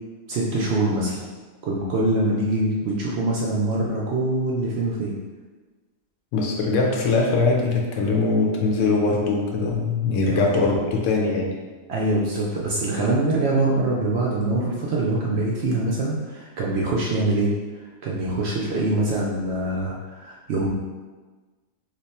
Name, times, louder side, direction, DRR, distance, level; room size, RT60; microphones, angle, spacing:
voice 1, 0.3-1.2 1.6-5.1 10.3-10.4 11.9-17.5 18.0-20.7, right 2 dB, 65° right, -4 dB, 0.7 m, -24 dB
voice 2, 6.3-11.5, left 3 dB, 70° left, -1 dB, 0.9 m, -21 dB
3.0 x 2.2 x 4.1 m, 1.3 s
omnidirectional pair, 1.4 m